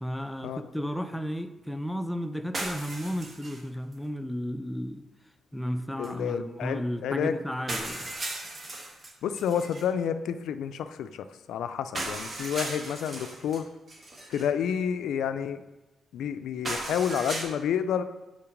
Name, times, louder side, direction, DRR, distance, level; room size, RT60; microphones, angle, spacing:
voice 1, 0.0-5.1 5.5-8.2, equal, 5° left, 8 dB, 0.4 m, -33 dB
sound 1, 2.5-3.6 3.9-4.0 6.0-6.1 7.0-7.1 7.7-9.8 11.9-13.6 13.9-14.5 16.6-17.4, right 2 dB, 40° right, 1.4 m, -36 dB
voice 2, 6.0-7.4 9.2-13.7 14.3-15.6 16.1-18.0, left 8 dB, 90° left, 11 dB, 0.3 m, -30 dB
5.7 x 4.3 x 5.1 m, 1.1 s
cardioid pair, 95°, 0 cm